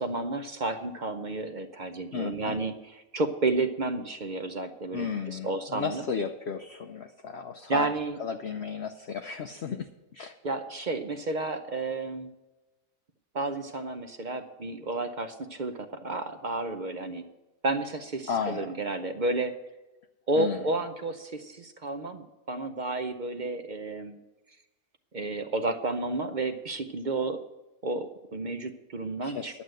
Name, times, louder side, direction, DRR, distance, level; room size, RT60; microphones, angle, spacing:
voice 1, 0.0-6.0 7.7-8.2 10.4-12.3 13.3-17.3 17.6-19.5 20.3-24.2 25.1-27.4 27.8-29.6, right 2 dB, 45° right, 8 dB, 0.6 m, -31 dB
voice 2, 2.1-2.6 4.9-7.9 8.2-9.9 10.1-10.3 18.3-18.8 20.3-20.6 29.2-29.6, left 6 dB, 60° left, 6 dB, 0.8 m, -34 dB
11.0 x 7.9 x 7.7 m, 1.1 s
omnidirectional pair, 1.5 m